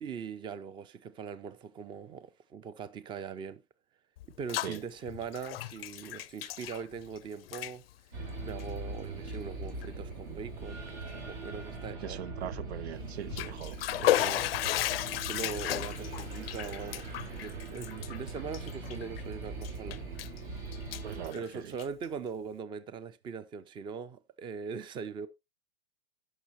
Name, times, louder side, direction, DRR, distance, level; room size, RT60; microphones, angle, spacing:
voice 1, 0.0-3.6 4.4-7.8 8.1-12.2 14.0-14.9 15.1-20.1 21.3-25.3, right 6 dB, 15° right, 0.5 m, -41 dB
Bathtub (filling or washing), 4.2-4.8 5.1-7.2 7.4-7.7 8.5-8.6 9.3-9.4 9.8-9.9 13.1-19.2 19.6-20.4 20.7-22.0, left 15 dB, 65° left, 0.5 m, -34 dB
sound 1, 8.1-21.3, right 3 dB, 55° right, 4.1 m, -41 dB
voice 2, 12.0-13.8 21.0-21.8, right 10 dB, 80° right, 0.6 m, -40 dB
16.0 x 5.8 x 2.8 m
hypercardioid pair, 125°, 32 cm